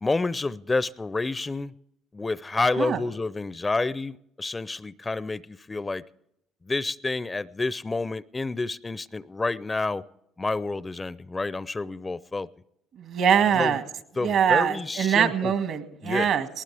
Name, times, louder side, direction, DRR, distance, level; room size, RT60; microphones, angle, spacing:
voice 1, 0.0-1.7 2.1-6.0 6.6-10.0 10.4-12.5 13.5-13.8 14.2-15.5 16.0-16.3, left 3 dB, 20° left, 19 dB, 0.5 m, -29 dB
voice 2, 12.9-13.8 14.2-16.5, right 8 dB, 65° right, 9 dB, 1.9 m, -23 dB
20.0 x 18.5 x 3.4 m, 0.78 s
hypercardioid pair, 65°, 0 cm